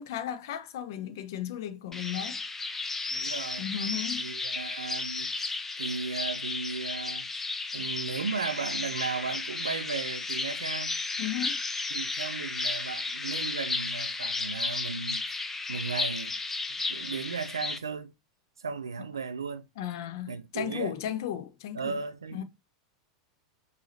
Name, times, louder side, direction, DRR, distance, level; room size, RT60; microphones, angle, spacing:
voice 1, 0.0-2.4 3.6-4.2 11.2-11.6 19.8-22.0 22.3-22.4, left 10 dB, 60° left, 0.7 m, -35 dB
sound 1, 1.9-17.8, left 3 dB, 15° left, 0.5 m, -33 dB
voice 2, 3.1-3.7 4.2-5.3 5.8-7.3 7.7-11.0 11.9-15.2 15.7-16.4 16.7-18.1 18.6-19.7 20.3-21.0 21.7-22.4, right 5 dB, 80° right, 0.6 m, -35 dB
4.8 x 2.7 x 4.1 m
figure-of-eight pair, 90°, 2 cm